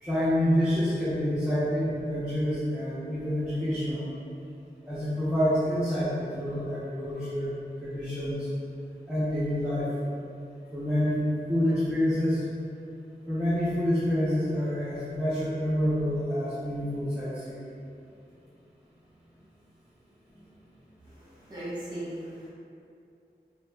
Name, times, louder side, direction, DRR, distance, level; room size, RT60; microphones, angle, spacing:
voice 1, 0.0-4.0 4.9-7.5 7.8-8.5 9.1-9.9 10.7-12.4 13.3-17.6 20.3-20.4, equal, 5° right, -13 dB, 0.6 m, -27 dB
voice 2, 21.0-22.5, right 1 dB, 25° right, -11 dB, 1.1 m, -38 dB
2.9 x 2.1 x 2.2 m, 2.5 s
wide cardioid pair, 45°, 18 cm